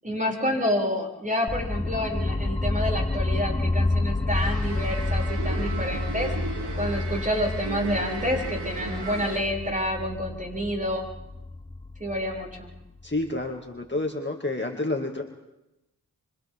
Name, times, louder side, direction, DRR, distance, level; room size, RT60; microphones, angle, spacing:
voice 1, 0.0-6.3 6.7-11.0 12.0-12.7, equal, 20° right, -1 dB, 6.9 m, -28 dB
sound 1, 1.5-13.4, left 2 dB, 15° left, 0.9 m, -29 dB
sound 2, 4.4-9.4, right 4 dB, 85° right, 2.7 m, -35 dB
voice 2, 13.0-15.2, left 2 dB, 30° left, 1 dB, 2.4 m, -29 dB
29.0 x 25.5 x 3.8 m, 0.93 s
cardioid pair, 45°, 39 cm